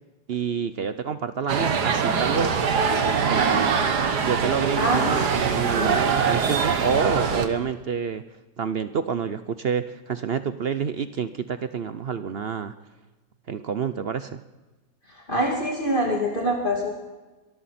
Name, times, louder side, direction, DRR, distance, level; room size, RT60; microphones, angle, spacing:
voice 1, 0.3-2.6 3.0-3.8 4.2-8.2 8.6-12.7 13.5-14.4, right 6 dB, 55° right, 11 dB, 0.6 m, -28 dB
sound 1, 1.5-7.5, right 6 dB, 75° right, 1.9 m, -23 dB
voice 2, 4.8-5.4 5.7-6.0 15.1-16.9, equal, 30° left, -2 dB, 2.8 m, -25 dB
24.0 x 14.0 x 4.3 m, 1.2 s
omnidirectional pair, 1.8 m